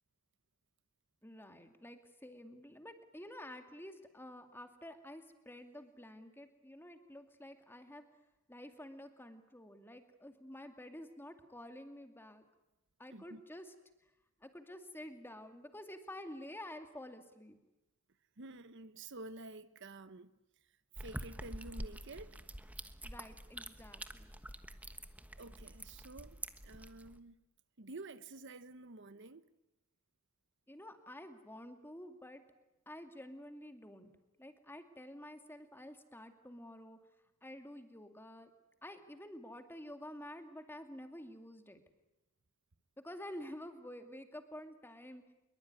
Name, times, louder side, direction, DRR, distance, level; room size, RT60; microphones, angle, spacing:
voice 1, 1.2-8.0 8.5-12.4 13.0-13.7 14.4-17.6 23.0-24.3 30.7-32.4 32.9-34.1 34.4-37.0 37.4-38.5 38.8-41.8 43.0-45.2, left 1 dB, 10° left, 2.4 m, -50 dB
voice 2, 13.1-13.4 18.4-20.3 20.6-22.4 25.4-27.4 27.8-29.4, right 2 dB, 60° right, 1.0 m, -50 dB
sound 1, 21.0-27.2, right 1 dB, 5° right, 1.2 m, -47 dB
25.0 x 23.0 x 9.7 m
head